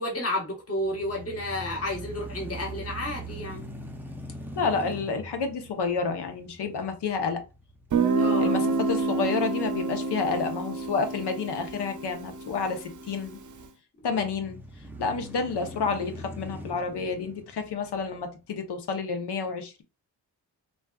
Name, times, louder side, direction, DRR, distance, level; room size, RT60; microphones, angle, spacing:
voice 1, 0.0-3.6 8.1-8.7 14.1-14.2, left 1 dB, 35° left, 1.2 m, -31 dB
sound 1, 0.8-8.9 9.4-9.5 14.0-18.5, right 1 dB, 5° right, 0.6 m, -42 dB
voice 2, 4.6-7.4 8.4-13.4 14.0-14.6 15.0-19.8, left 5 dB, 70° left, 0.9 m, -30 dB
Guitar, 7.9-13.5, right 3 dB, 45° right, 0.7 m, -28 dB
3.8 x 2.4 x 2.3 m
cardioid pair, 65°, 42 cm